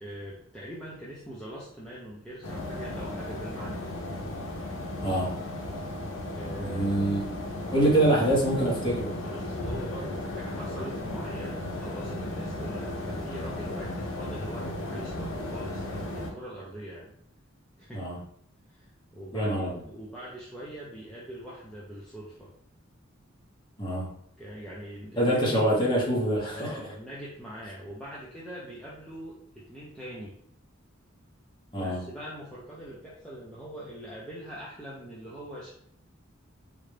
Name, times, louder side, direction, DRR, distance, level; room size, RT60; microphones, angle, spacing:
voice 1, 0.0-3.9 6.3-6.9 7.7-7.9 9.2-17.1 17.8-18.0 18.7-22.5 24.4-25.4 26.5-30.3 31.7-35.7, equal, 5° left, -7 dB, 0.5 m, -42 dB
sound 1, 2.4-16.3, left 1 dB, 70° left, 0.8 m, -35 dB
voice 2, 6.6-7.2 7.7-9.1 17.9-18.2 19.3-19.7 23.8-24.1 25.2-26.7 31.7-32.0, right 1 dB, 25° left, -4 dB, 1.0 m, -25 dB
3.8 x 2.2 x 3.3 m, 0.67 s
head